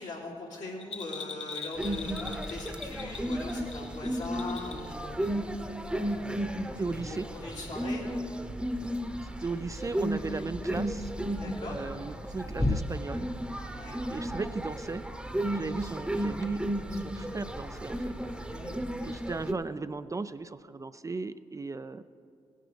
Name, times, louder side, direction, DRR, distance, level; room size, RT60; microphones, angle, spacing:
voice 1, 0.0-5.2 6.8-8.0 11.3-11.8 13.7-14.0 18.5-18.8, left 2 dB, 75° left, -5 dB, 2.8 m, -40 dB
Bell, 0.8-4.9 5.2-5.3, left 5 dB, 50° left, 1.2 m, -41 dB
sound 1, 1.8-19.5, right 1 dB, 5° right, 0.9 m, -34 dB
voice 2, 6.8-7.3 9.2-11.1 11.6-13.3 14.1-15.0 15.5-16.7 16.9-18.2 19.0-22.0, right 3 dB, 25° right, 13 dB, 0.4 m, -36 dB
sound 2, 8.4-18.7, left 2 dB, 25° left, 0.9 m, -40 dB
17.0 x 10.0 x 3.4 m, 2.4 s
supercardioid pair, 50°, 12 cm